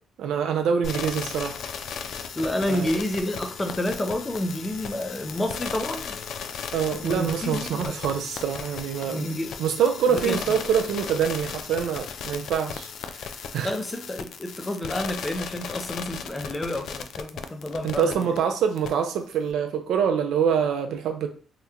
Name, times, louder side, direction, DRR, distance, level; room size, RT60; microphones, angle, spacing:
voice 1, 0.2-1.6 2.7-2.9 6.7-9.3 9.6-12.9 13.2-13.7 17.8-21.3, right 7 dB, 80° right, 0.5 m, -25 dB
sound 1, 0.8-18.4 18.8-18.9, left 6 dB, 70° left, 0.3 m, -36 dB
voice 2, 2.3-6.2 7.0-7.9 9.1-9.5 10.1-10.3 13.6-18.1, left 1 dB, 20° left, 0.6 m, -29 dB
2.9 x 2.1 x 3.7 m
cardioid pair, 90°, 0 cm